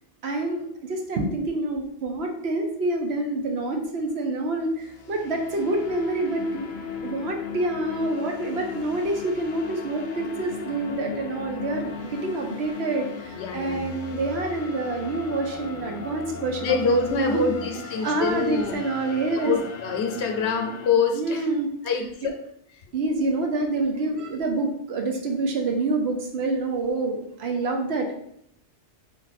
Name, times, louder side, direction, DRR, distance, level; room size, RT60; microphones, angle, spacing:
voice 1, 0.2-6.7 7.0-19.6 21.2-21.7 21.9-22.1 22.9-28.2, right 2 dB, 70° right, 3 dB, 0.9 m, -27 dB
sound 1, 4.6-20.9, left 5 dB, 60° left, 0.5 m, -37 dB
voice 2, 13.3-14.0 16.6-18.7 19.3-21.4 21.8-22.4, left 4 dB, 75° left, 4 dB, 0.9 m, -25 dB
3.3 x 2.6 x 4.1 m, 0.72 s
omnidirectional pair, 1.2 m